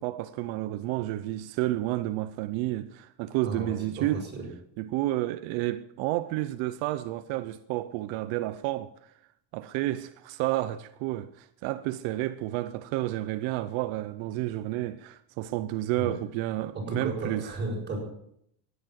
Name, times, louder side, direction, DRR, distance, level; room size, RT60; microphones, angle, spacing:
voice 1, 0.0-4.2 4.8-8.9 9.5-17.5, right 16 dB, 80° right, 0.9 m, -30 dB
voice 2, 3.4-4.5 16.0-16.2 16.7-18.0, right 2 dB, 25° right, 6.7 m, -34 dB
15.0 x 10.0 x 7.6 m
cardioid pair, 140°, 45 cm